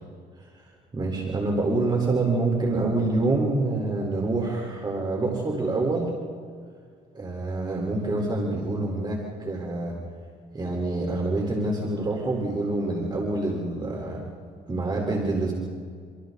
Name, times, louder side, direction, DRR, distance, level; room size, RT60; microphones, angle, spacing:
voice 1, 0.9-6.1 7.1-9.9 10.5-14.2 14.7-15.5, right 2 dB, 25° right, -1 dB, 4.4 m, -26 dB
28.0 x 27.5 x 4.1 m, 2.1 s
cardioid pair, 110°, 17 cm